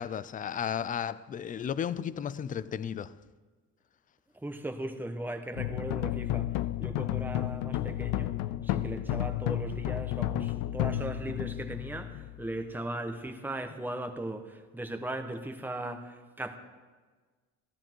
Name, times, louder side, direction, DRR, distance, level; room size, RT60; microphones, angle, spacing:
voice 1, 0.0-3.1, left 8 dB, 25° left, 0.4 m, -34 dB
voice 2, 4.3-8.4 8.6-16.6, right 1 dB, 5° right, 1.1 m, -38 dB
sound 1, 5.6-12.8, left 14 dB, 85° left, 0.6 m, -32 dB
14.5 x 13.0 x 4.6 m
cardioid pair, 115°, 32 cm